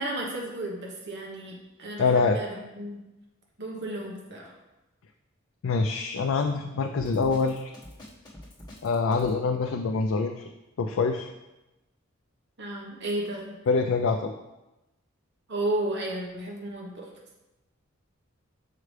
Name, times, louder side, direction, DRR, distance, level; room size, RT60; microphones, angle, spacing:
voice 1, 0.0-3.0 3.6-4.5 12.6-13.5 15.5-17.1, right 1 dB, 55° right, -2 dB, 1.1 m, -33 dB
voice 2, 2.0-2.4 5.6-7.7 8.8-10.4 10.8-11.3 13.7-14.3, left 4 dB, 65° left, 5 dB, 0.4 m, -25 dB
Drum kit, 7.0-9.4, left 1 dB, 20° left, 1.4 m, -46 dB
6.5 x 4.8 x 3.3 m, 1.0 s
head